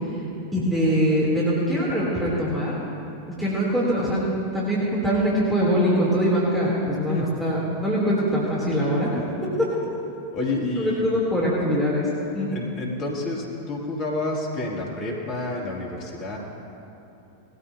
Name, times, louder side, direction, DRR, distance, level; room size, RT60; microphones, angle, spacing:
voice 1, 0.5-2.7 3.4-9.1 9.6-9.7 10.8-12.1 12.3-12.5, equal, 5° right, -7 dB, 3.4 m, -23 dB
voice 2, 10.3-11.0 12.5-16.4, left 2 dB, 40° left, -3 dB, 3.0 m, -29 dB
20.0 x 14.0 x 2.9 m, 2.8 s
figure-of-eight pair, 90°, 0 cm